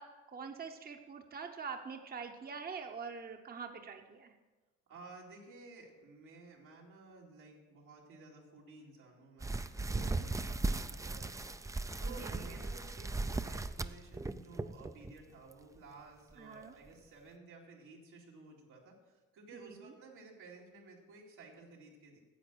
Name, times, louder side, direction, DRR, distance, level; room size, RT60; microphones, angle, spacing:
voice 1, 0.0-4.3 9.9-10.3 12.1-12.4 16.4-16.7 19.6-19.8, right 5 dB, 30° right, 5 dB, 0.9 m, -45 dB
voice 2, 4.9-22.2, right 3 dB, 85° right, -2 dB, 2.6 m, -54 dB
sound 1, 9.4-15.1 15.5-15.8 16.3-16.4 16.9-17.0, right 2 dB, 10° right, 0.4 m, -37 dB
10.0 x 8.0 x 6.2 m, 1.2 s
cardioid pair, 90°, 30 cm